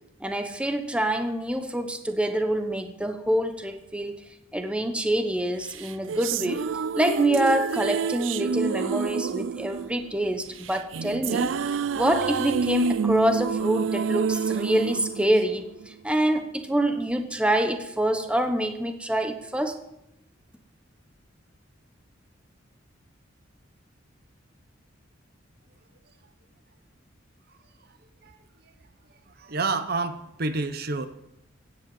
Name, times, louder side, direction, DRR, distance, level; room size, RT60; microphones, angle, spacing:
voice 1, 0.2-4.2 4.5-6.7 6.9-11.5 11.9-15.7 16.0-19.8, right 1 dB, 5° right, 7 dB, 1.0 m, -26 dB
sound 1, 5.7-16.1, right 6 dB, 75° right, 0.4 m, -28 dB
voice 2, 29.3-31.1, right 3 dB, 50° right, 11 dB, 0.9 m, -29 dB
16.0 x 8.2 x 7.8 m, 0.82 s
head